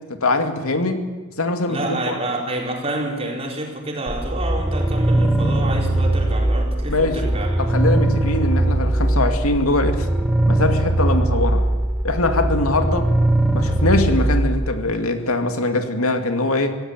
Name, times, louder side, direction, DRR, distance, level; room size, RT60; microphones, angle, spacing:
voice 1, 0.1-1.0 1.4-2.2 6.9-7.2 7.6-10.1 10.5-11.6 12.0-13.1 13.5-16.7, left 2 dB, 90° left, 7 dB, 2.5 m, -22 dB
voice 2, 1.7-7.6, right 1 dB, 25° right, 0 dB, 4.6 m, -28 dB
sound 1, 4.1-14.7, right 1 dB, 5° right, 1.3 m, -20 dB
25.5 x 16.5 x 9.1 m, 1.3 s
head